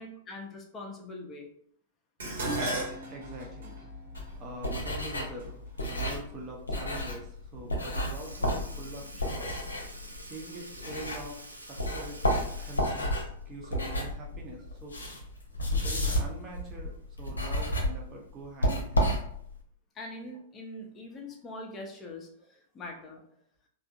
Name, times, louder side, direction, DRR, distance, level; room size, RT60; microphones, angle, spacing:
voice 1, 0.0-1.5 20.0-22.3 22.7-23.2, left 2 dB, 20° left, 1 dB, 0.7 m, -42 dB
Dishes pots and pans, 2.2-6.6 7.4-7.8 8.2-9.1 9.3-9.4, right 1 dB, 60° right, 1.2 m, -37 dB
voice 2, 3.1-3.8 4.4-5.6 5.9-9.6 10.2-14.9 15.8-19.2 22.4-22.5, right 2 dB, 25° right, -1 dB, 0.9 m, -44 dB
sound 1, 4.2-11.5 11.8-19.6, equal, 75° left, 0.7 m, -32 dB
Sink (filling or washing) / Liquid, 7.5-7.7 8.0-14.1 14.4-14.5 16.1-16.2 17.1-17.2 18.0-18.2 19.1-19.2, right 1 dB, 85° right, 0.5 m, -48 dB
3.5 x 2.5 x 2.4 m, 0.66 s
figure-of-eight pair, 100°, 0 cm